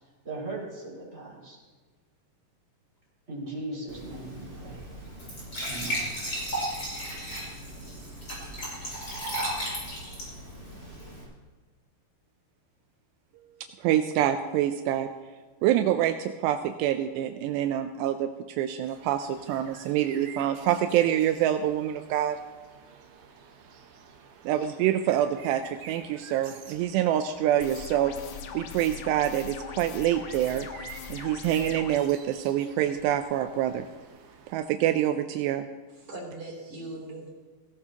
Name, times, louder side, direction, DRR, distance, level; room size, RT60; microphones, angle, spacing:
voice 1, 0.2-1.6 3.3-4.9 5.6-6.1, right 2 dB, 15° right, -5 dB, 5.7 m, -38 dB
Glass / Trickle dribble / Fill (with liquid), 3.9-11.2, equal, 25° left, 6.1 m, -35 dB
voice 2, 13.8-15.1 15.6-18.3 18.6-22.4 24.5-28.2 28.5-30.7 31.1-33.9 34.5-35.7, right 11 dB, 85° right, 7 dB, 2.7 m, -26 dB
sound 1, 18.8-34.6, right 6 dB, 65° right, 2.3 m, -50 dB
sound 2, 27.6-32.0, left 7 dB, 80° left, 3.1 m, -41 dB
voice 3, 35.9-37.3, right 2 dB, 35° right, -2 dB, 3.8 m, -40 dB
17.5 x 17.0 x 2.9 m, 1.4 s
omnidirectional pair, 4.9 m